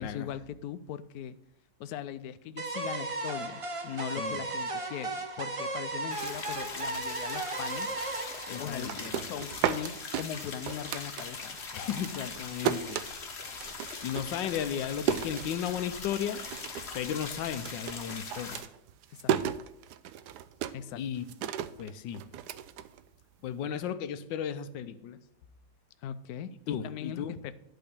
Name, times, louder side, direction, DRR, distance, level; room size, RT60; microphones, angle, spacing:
voice 1, 0.0-1.4 1.8-7.9 8.5-11.6 19.1-19.4 20.7-21.0 26.0-27.5, left 9 dB, 70° left, 13 dB, 0.9 m, -40 dB
sound 1, 2.6-9.5, right 3 dB, 50° right, 0.4 m, -36 dB
sound 2, 6.1-18.6, left 4 dB, 40° left, 1.2 m, -41 dB
voice 2, 8.5-9.2 11.7-13.0 14.0-16.4 16.9-18.6 21.0-21.2 21.8-22.2 23.4-25.2 26.7-27.3, left 9 dB, 90° left, 11 dB, 1.4 m, -35 dB
sound 3, 8.7-11.6 11.9-16.0 16.4-17.0 17.2-23.5, right 9 dB, 70° right, 1.1 m, -34 dB
11.0 x 3.8 x 6.9 m, 0.82 s
omnidirectional pair, 2.0 m